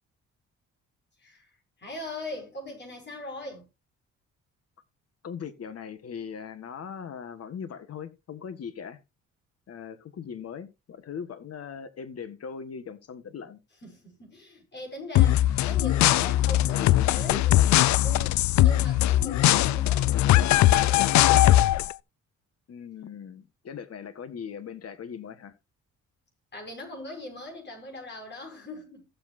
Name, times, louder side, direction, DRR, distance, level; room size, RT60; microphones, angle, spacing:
voice 1, 1.2-1.5 1.8-3.7 13.8-21.6 26.5-29.1, left 1 dB, 35° left, 6.2 m, -40 dB
voice 2, 5.2-9.0 9.7-13.6 22.7-25.5, left 7 dB, 55° left, 1.5 m, -40 dB
sound 1, 15.2-21.9, left 14 dB, 70° left, 0.4 m, -20 dB
15.5 x 7.5 x 2.6 m
cardioid pair, 90°, 30 cm